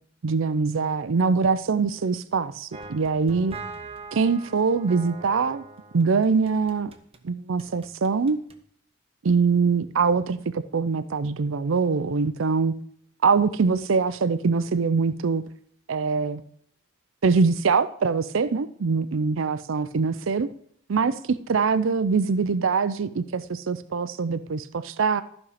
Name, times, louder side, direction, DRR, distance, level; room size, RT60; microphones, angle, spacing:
voice 1, 0.2-3.5 4.1-5.6 5.9-6.9 7.2-8.4 9.2-12.8 13.2-15.4 15.9-16.4 17.2-20.5 20.9-25.2, right 5 dB, 70° right, 0.5 m, -23 dB
sound 1, 2.7-7.2 7.6-8.6, right 3 dB, 30° right, 0.8 m, -42 dB
13.5 x 5.4 x 4.9 m
head